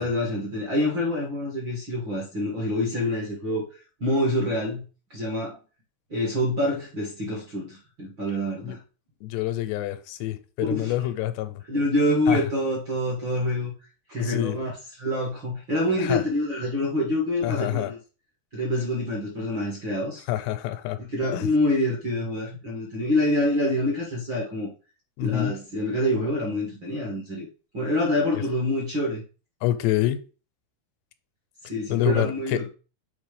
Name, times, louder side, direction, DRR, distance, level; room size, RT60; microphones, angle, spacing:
voice 1, 0.0-3.6 4.0-4.8 5.1-5.6 6.1-8.8 10.7-10.9 11.7-13.7 14.1-18.0 18.5-20.2 21.0-24.7 25.2-27.5 27.7-29.2 31.6-32.6, left 1 dB, 50° right, 1.5 m, -26 dB
voice 2, 9.2-11.6 12.3-12.4 14.2-14.6 16.0-16.2 17.4-17.9 20.3-21.0 21.3-21.5 25.2-25.6 28.3-28.4 29.6-30.2 31.9-32.6, left 13 dB, 85° left, 2.8 m, -27 dB
7.2 x 3.2 x 5.0 m
omnidirectional pair, 4.8 m